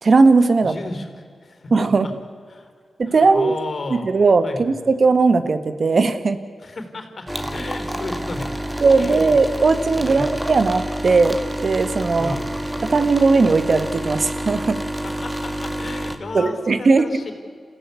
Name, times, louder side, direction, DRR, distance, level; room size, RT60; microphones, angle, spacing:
voice 1, 0.0-0.7 1.7-2.1 3.0-3.6 4.0-6.4 8.8-12.4 12.9-14.8 16.3-17.1, right 4 dB, 60° right, 11 dB, 1.6 m, -17 dB
voice 2, 0.6-2.1 2.5-2.7 3.1-4.1 4.4-4.7 6.6-8.5 8.9-9.3 9.9-10.3 12.2-12.9 15.0-17.3, left 2 dB, 55° left, 7 dB, 3.8 m, -34 dB
sound 1, 7.3-16.2, right 1 dB, 10° right, 2.2 m, -28 dB
29.0 x 15.5 x 8.5 m, 2.1 s
cardioid pair, 65°, 0 cm